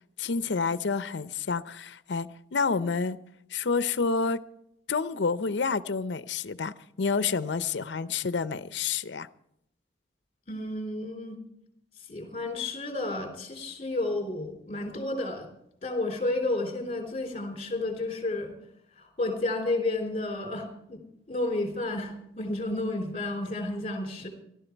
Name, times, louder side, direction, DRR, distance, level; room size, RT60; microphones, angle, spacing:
voice 1, 0.2-3.2 3.5-4.4 4.9-9.3, left 4 dB, 75° left, 0.6 m, -29 dB
voice 2, 10.5-11.4 12.1-15.5 15.8-18.5 18.9-21.0 21.3-24.3, left 2 dB, 30° left, 3.4 m, -31 dB
17.0 x 12.5 x 4.5 m
head